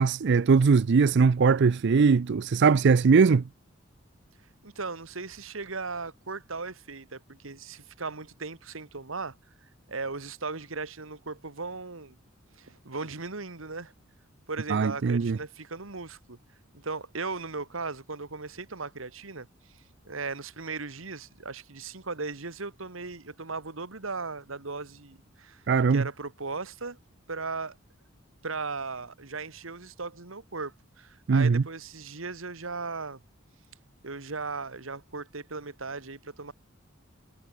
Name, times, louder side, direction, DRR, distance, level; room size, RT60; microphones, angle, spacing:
voice 1, 0.0-3.4 14.7-15.4 25.7-26.1 31.3-31.6, right 5 dB, 60° right, 0.5 m, -21 dB
voice 2, 4.6-9.4 9.9-12.2 12.6-13.9 14.5-16.4 16.7-19.5 20.1-25.6 25.9-27.0 27.3-27.8 28.4-33.2 34.0-36.5, right 4 dB, 80° right, 1.9 m, -37 dB
head